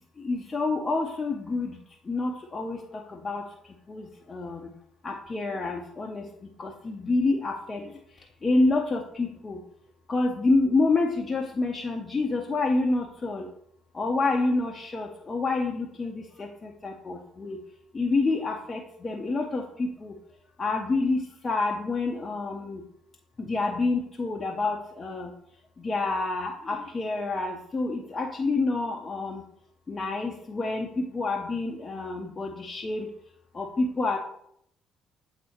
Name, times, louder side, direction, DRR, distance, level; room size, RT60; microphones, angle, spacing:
voice 1, 0.2-1.8 2.0-4.7 5.0-9.6 10.1-13.5 13.9-17.6 17.9-20.2 20.6-22.8 23.4-25.3 25.8-29.4 29.9-33.1 33.5-34.2, left 3 dB, 30° left, 0 dB, 0.7 m, -28 dB
7.7 x 4.1 x 3.0 m, 0.71 s
figure-of-eight pair, 45°, 0 cm